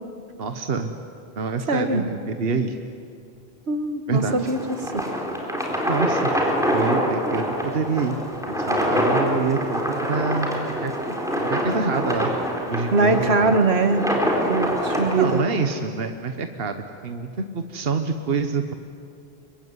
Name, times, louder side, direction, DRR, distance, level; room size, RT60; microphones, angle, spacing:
voice 1, 0.4-0.9 1.4-2.9 4.1-4.5 5.9-6.3 6.7-8.2 8.5-10.5 10.8-10.9 11.5-12.3 12.7-13.5 15.1-18.7, right 4 dB, 65° right, 6 dB, 1.4 m, -26 dB
voice 2, 1.7-2.0 3.7-5.0 12.9-14.1 14.5-15.4, right 3 dB, 85° right, 7 dB, 2.1 m, -22 dB
sound 1, 4.1-15.4, equal, 5° right, 4.1 m, -25 dB
25.0 x 24.0 x 9.7 m, 2.3 s
omnidirectional pair, 1.1 m